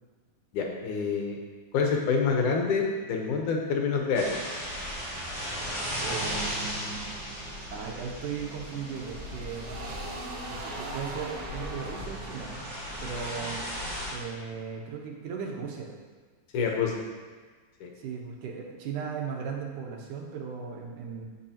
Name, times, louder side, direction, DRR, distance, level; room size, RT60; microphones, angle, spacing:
voice 1, 0.5-1.4 1.7-4.4 16.5-16.9 17.8-17.9, left 5 dB, 75° left, 1 dB, 2.5 m, -27 dB
sound 1, 4.1-14.1, equal, 25° right, 3.1 m, -37 dB
sound 2, 5.1-14.8, right 2 dB, 55° right, 2.4 m, -43 dB
voice 2, 6.0-7.1 7.7-9.7 10.5-12.7 13.0-13.6 14.1-15.9 18.0-21.3, right 6 dB, 80° right, 0 dB, 2.6 m, -37 dB
15.0 x 6.0 x 2.9 m, 1.5 s
omnidirectional pair, 3.6 m